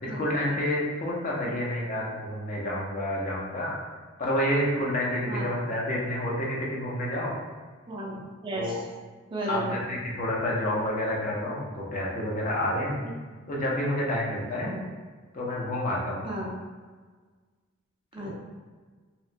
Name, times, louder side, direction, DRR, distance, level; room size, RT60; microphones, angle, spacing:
voice 1, 0.0-3.8 4.2-7.4 8.5-8.8 9.5-13.0 13.5-14.7 15.3-16.3 18.2-18.3, left 1 dB, 40° left, -3 dB, 0.5 m, -29 dB
voice 2, 7.9-8.8 9.3-9.8 14.6-14.8 16.3-16.5 18.1-18.3, right 2 dB, 25° right, -4 dB, 0.4 m, -34 dB
2.8 x 2.1 x 2.5 m, 1.4 s
head